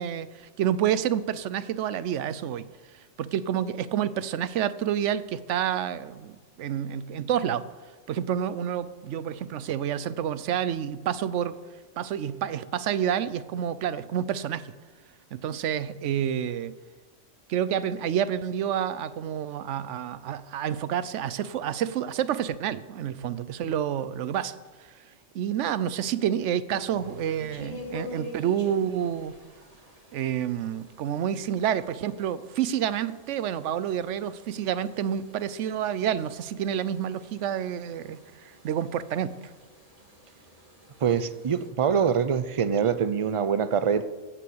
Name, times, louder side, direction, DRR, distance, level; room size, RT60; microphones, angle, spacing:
voice 1, 0.0-7.7 8.1-11.5 12.0-14.7 15.3-16.7 17.5-29.4 30.1-39.5, right 9 dB, 75° right, 16 dB, 0.9 m, -29 dB
sound 1, 26.8-41.7, left 1 dB, 30° right, 2.0 m, -47 dB
voice 2, 41.0-44.0, right 7 dB, 50° right, 13 dB, 0.3 m, -24 dB
14.5 x 6.1 x 7.9 m, 1.3 s
omnidirectional pair, 1.3 m